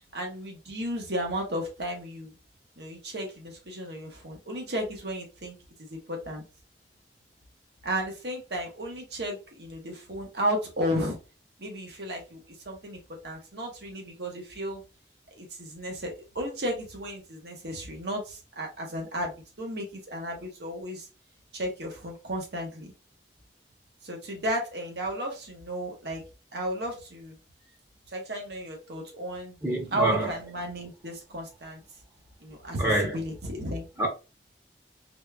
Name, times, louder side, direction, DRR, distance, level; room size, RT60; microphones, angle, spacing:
voice 1, 0.1-2.3 2.8-6.4 7.8-11.2 11.6-13.0 13.2-14.8 15.4-21.1 21.5-22.9 24.0-26.2 26.5-27.4 28.1-29.6 29.9-31.8 32.4-33.9, equal, 70° right, 1.2 m, -34 dB
voice 2, 29.6-30.3 32.8-33.2 34.0-34.1, right 1 dB, 15° right, 0.9 m, -26 dB
4.2 x 3.3 x 2.3 m
head